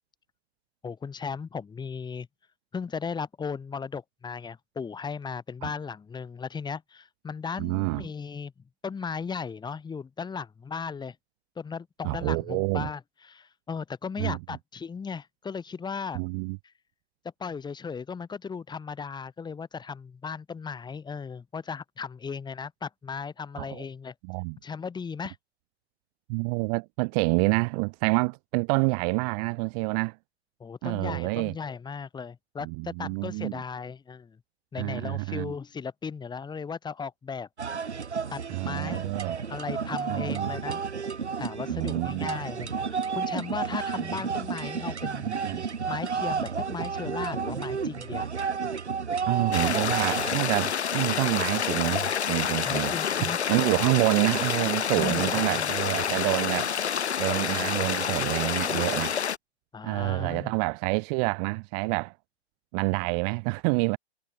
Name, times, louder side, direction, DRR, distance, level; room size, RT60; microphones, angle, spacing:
voice 1, 0.8-2.3 2.7-8.5 8.8-11.2 11.6-13.0 13.3-16.2 17.4-24.1 24.6-25.4 30.6-34.4 34.7-37.5 38.3-39.2 39.5-40.8 41.4-45.3 45.9-48.3 52.6-53.4 54.9-55.7 59.7-60.5, left 5 dB, 15° left, 5.5 m, -36 dB
voice 2, 7.6-8.0 12.0-12.9 14.2-14.4 16.1-16.6 23.6-23.9 24.2-24.6 26.3-30.2 30.8-31.5 32.6-33.6 34.8-35.5 38.5-39.4 40.1-40.5 41.7-42.3 43.9-44.2 45.2-45.7 49.3-56.7 57.2-59.2 59.8-62.1 62.7-64.0, right 33 dB, 35° right, 2.0 m, -28 dB
sound 1, 37.6-50.3, right 6 dB, 90° right, 0.9 m, -31 dB
sound 2, 49.5-59.4, left 8 dB, 75° left, 1.0 m, -28 dB
figure-of-eight pair, 110°, 33 cm